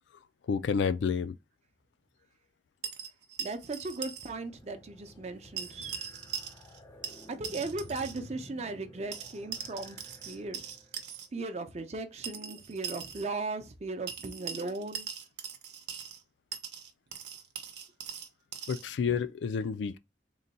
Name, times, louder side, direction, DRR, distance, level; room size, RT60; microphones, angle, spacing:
voice 1, 0.5-1.4 18.7-20.0, left 6 dB, 80° left, 0.3 m, -29 dB
sound 1, 2.8-4.3 4.6-4.7 5.6-6.8 7.0-8.2 9.1-11.3 12.2-13.3 14.1-16.2 16.5-18.8, right 8 dB, 70° right, 0.7 m, -41 dB
voice 2, 3.4-6.0 7.3-10.0 10.3-10.6 11.3-15.1, right 3 dB, 35° right, 0.5 m, -37 dB
sound 2, 3.8-11.2, left 1 dB, 15° left, 0.5 m, -53 dB
3.8 x 2.2 x 4.0 m
head